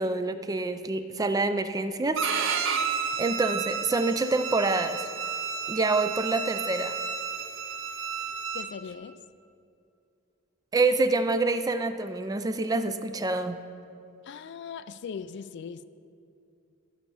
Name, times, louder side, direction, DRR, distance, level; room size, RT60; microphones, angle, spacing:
voice 1, 0.0-2.5 3.2-5.0 5.7-7.0 10.7-13.6, right 3 dB, 20° right, 0.4 m, -27 dB
Bowed string instrument, 2.2-8.7, right 6 dB, 65° right, 0.6 m, -31 dB
voice 2, 8.5-9.2 14.2-15.8, left 6 dB, 60° left, 0.3 m, -40 dB
13.0 x 5.6 x 5.5 m
head